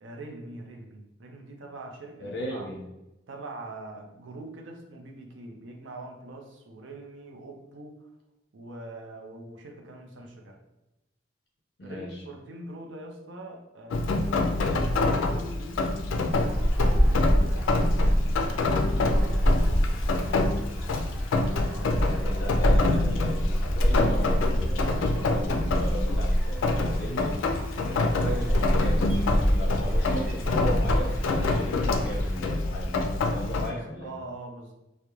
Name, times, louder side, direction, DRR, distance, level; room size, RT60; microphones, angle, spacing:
voice 1, 0.0-2.7 3.3-8.1 8.5-10.6 11.8-15.8 16.2-17.7 18.3-20.3 21.6-22.0 33.6-34.7, right 2 dB, 80° right, 2 dB, 0.5 m, -43 dB
voice 2, 2.2-2.8 10.2-10.3 11.8-12.2 21.8-27.3 27.8-34.1, equal, 60° left, -2 dB, 0.6 m, -36 dB
Rain, 13.9-33.7, left 2 dB, 90° left, 0.3 m, -27 dB
sound 1, 16.3-32.4, equal, 10° right, 0.3 m, -26 dB
2.3 x 2.0 x 2.9 m, 0.96 s
head